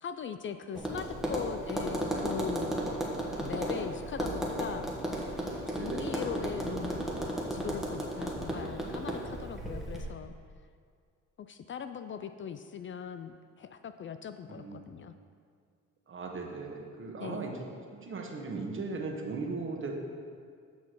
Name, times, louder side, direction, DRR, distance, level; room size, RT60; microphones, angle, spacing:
voice 1, 0.0-2.8 3.4-4.9 5.7-7.1 7.5-10.3 11.4-15.1 17.2-17.5, left 7 dB, 40° left, 10 dB, 0.4 m, -40 dB
Tap, 0.7-10.1, right 1 dB, ahead, 1.5 m, -34 dB
voice 2, 5.7-6.2 14.5-14.9 16.1-17.6 17.9-19.9, right 4 dB, 40° right, 1 dB, 1.4 m, -38 dB
8.6 x 5.9 x 4.6 m, 2.1 s
cardioid pair, 90°, 30 cm